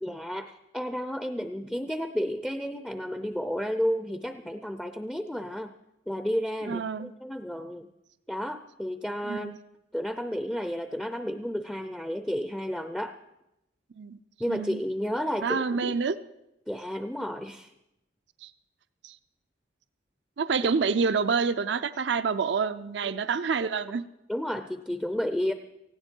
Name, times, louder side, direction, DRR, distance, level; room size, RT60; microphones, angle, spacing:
voice 1, 0.0-5.7 6.1-7.9 8.3-9.6 9.9-13.1 14.4-15.9 16.7-17.7 23.0-23.1 24.3-25.5, equal, 5° left, 8 dB, 0.5 m, -32 dB
voice 2, 6.7-7.1 9.2-9.6 14.0-14.2 14.5-14.8 15.4-16.2 18.4-18.5 19.0-19.2 20.4-24.0, right 5 dB, 65° right, 12 dB, 0.5 m, -27 dB
18.5 x 15.5 x 4.5 m, 0.88 s
head